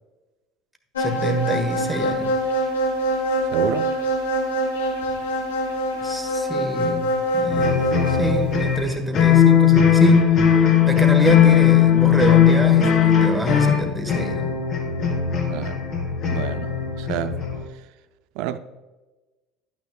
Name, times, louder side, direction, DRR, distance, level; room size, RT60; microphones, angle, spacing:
sound 1, 1.0-8.4, equal, 90° left, 1.4 m, -24 dB
voice 1, 1.0-2.4 6.0-14.6, right 1 dB, 5° right, 1.6 m, -26 dB
voice 2, 3.5-3.9 15.5-15.9 16.3-17.4 18.4-18.6, right 11 dB, 65° right, 0.5 m, -29 dB
sound 2, 7.5-17.6, left 9 dB, 55° left, 2.6 m, -18 dB
11.0 x 9.3 x 2.4 m
hypercardioid pair, 70°, 0 cm